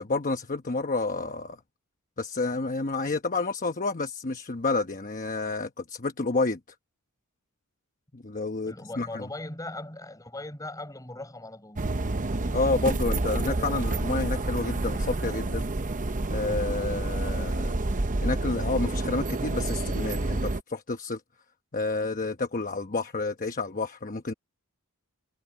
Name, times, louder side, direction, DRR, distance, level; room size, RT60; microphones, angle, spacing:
voice 1, 0.0-1.6 2.2-6.6 8.1-9.3 12.5-15.6 16.3-17.8 18.2-21.2 21.7-24.3, left 3 dB, 40° left, 1.0 m, -29 dB
voice 2, 8.7-11.9, left 2 dB, 15° left, 6.5 m, -39 dB
sound 1, 11.8-20.6, right 2 dB, 35° right, 0.8 m, -29 dB
head